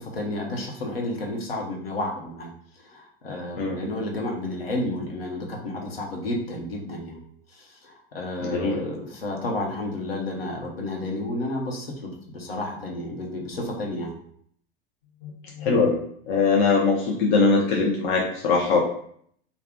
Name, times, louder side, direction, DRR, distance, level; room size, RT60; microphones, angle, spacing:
voice 1, 0.0-7.2 7.5-14.1, left 1 dB, 70° left, 0 dB, 1.0 m, -31 dB
voice 2, 8.4-8.9 15.2-15.3 15.6-16.0 16.3-18.8, left 4 dB, 50° left, -2 dB, 0.8 m, -21 dB
3.3 x 2.3 x 3.6 m, 0.63 s
figure-of-eight pair, 90°, 30 cm